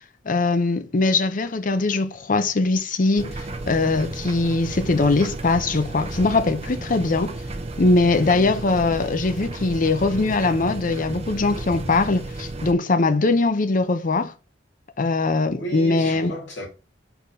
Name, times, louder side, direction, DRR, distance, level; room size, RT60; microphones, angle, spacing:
voice 1, 0.3-3.3 3.7-7.3 7.8-14.3 15.0-16.3, left 3 dB, 45° left, 0.7 m, -21 dB
sound 1, 3.2-12.7, right 2 dB, 35° right, 0.8 m, -33 dB
voice 2, 8.1-8.5 15.5-16.7, equal, 75° left, 2.9 m, -33 dB
4.7 x 4.0 x 5.4 m
head